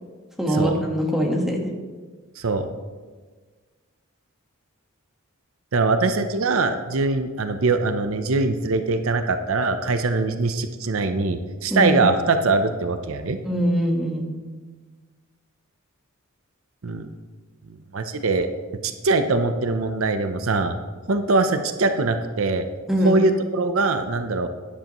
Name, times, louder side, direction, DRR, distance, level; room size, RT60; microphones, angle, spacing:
voice 1, 0.4-1.6 11.7-12.0 13.4-14.3 22.9-23.1, equal, ahead, -1 dB, 1.3 m, -22 dB
voice 2, 2.4-2.7 5.7-13.4 16.8-17.1 17.9-18.5 18.8-20.7 21.1-22.6 23.0-24.5, right 3 dB, 70° right, 8 dB, 0.7 m, -22 dB
12.5 x 10.5 x 3.0 m, 1.4 s
head